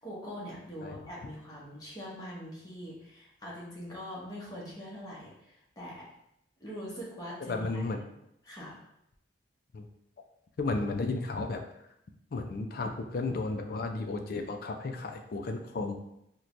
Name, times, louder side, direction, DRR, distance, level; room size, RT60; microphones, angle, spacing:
voice 1, 0.0-6.1 6.6-8.1 8.4-8.8, equal, 20° left, -6 dB, 0.9 m, -43 dB
voice 2, 7.4-8.0 9.7-9.9 10.6-11.6 12.3-16.1, left 3 dB, 50° left, 4 dB, 0.4 m, -33 dB
4.4 x 2.2 x 2.5 m, 0.79 s
head